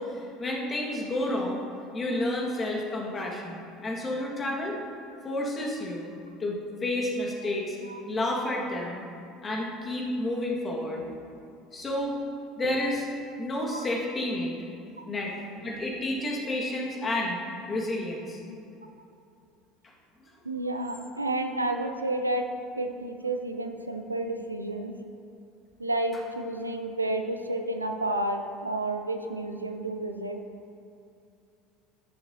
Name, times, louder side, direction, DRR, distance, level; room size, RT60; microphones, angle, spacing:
voice 1, 0.0-1.6 1.9-4.8 5.2-6.1 6.4-7.8 8.1-9.0 9.4-11.0 11.7-12.2 12.6-13.1 13.4-14.5 15.1-17.4 17.7-18.4, left 1 dB, 25° left, -1 dB, 1.7 m, -30 dB
voice 2, 20.4-22.5 22.8-24.9 25.8-30.4, right 1 dB, 90° right, 5 dB, 0.4 m, -31 dB
13.5 x 6.8 x 2.7 m, 2.6 s
figure-of-eight pair, 65°, 0 cm